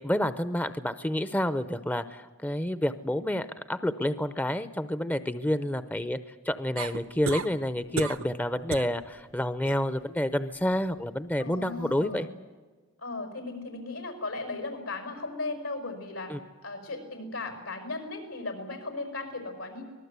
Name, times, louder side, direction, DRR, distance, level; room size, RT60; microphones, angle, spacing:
voice 1, 0.0-6.2 6.4-12.3 16.3-16.4, left 1 dB, 10° left, 12 dB, 0.7 m, -29 dB
sound 1, 6.8-7.5 8.0-8.3 8.7-9.0 9.4-9.8 11.6-11.7, right 4 dB, 75° right, 1.0 m, -33 dB
voice 2, 11.4-12.3 13.0-16.3 16.6-19.8, left 3 dB, 85° left, 6 dB, 5.4 m, -36 dB
25.0 x 19.5 x 8.2 m, 1.3 s
head